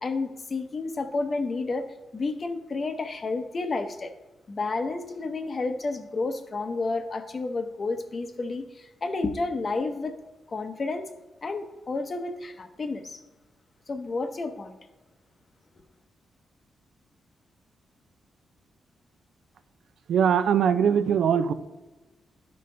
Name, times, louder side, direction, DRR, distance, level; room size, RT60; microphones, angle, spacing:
voice 1, 0.0-1.9 2.1-4.1 4.5-10.1 10.5-11.1 11.4-13.2 13.9-14.8, left 3 dB, 35° left, 8 dB, 0.7 m, -31 dB
voice 2, 20.1-21.5, right 8 dB, 80° right, 10 dB, 0.5 m, -21 dB
12.0 x 5.3 x 3.3 m, 1.1 s
cardioid pair, 125°, 0 cm